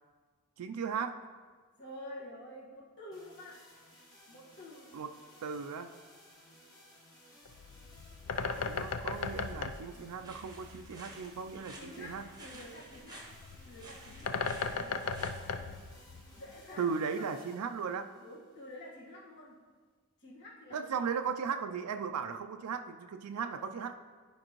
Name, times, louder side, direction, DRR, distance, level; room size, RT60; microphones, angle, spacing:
voice 1, 0.6-1.2 4.9-5.2 5.4-5.9 8.4-12.2 16.8-18.1 20.7-23.9, right 6 dB, 85° right, 8 dB, 0.4 m, -37 dB
voice 2, 1.8-3.6 4.3-5.0 11.7-13.3 13.6-14.3 14.8-15.1 16.4-17.5 18.2-19.6 20.2-21.1, left 1 dB, 55° left, -6 dB, 1.6 m, -49 dB
sound 1, 3.1-19.1, equal, 15° left, 1.3 m, -59 dB
Bird, 7.5-16.6, left 5 dB, 75° left, 0.5 m, -38 dB
sound 2, 10.2-15.5, right 2 dB, 20° right, 0.9 m, -53 dB
11.0 x 5.2 x 3.0 m, 1.5 s
head